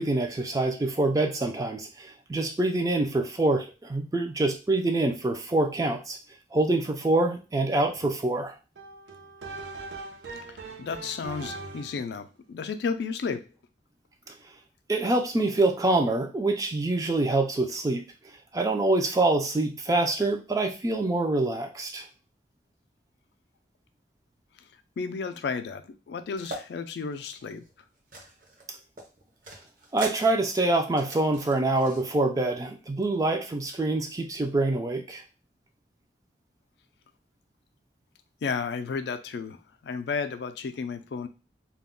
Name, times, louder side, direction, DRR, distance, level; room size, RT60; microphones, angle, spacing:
voice 1, 0.0-6.2 6.5-8.5 14.3-14.4 14.9-18.0 18.5-22.1 29.9-35.2, right 2 dB, 20° right, 4 dB, 0.3 m, -25 dB
sound 1, 8.8-12.1, right 3 dB, 80° right, 0.5 m, -40 dB
voice 2, 10.5-13.5 24.6-24.7 25.0-27.6 38.4-41.3, left 5 dB, 70° left, 10 dB, 0.3 m, -33 dB
sound 2, 26.4-26.6 27.1-28.6 29.0-32.0, right 2 dB, 45° right, 0.7 m, -41 dB
2.3 x 2.1 x 3.6 m, 0.31 s
head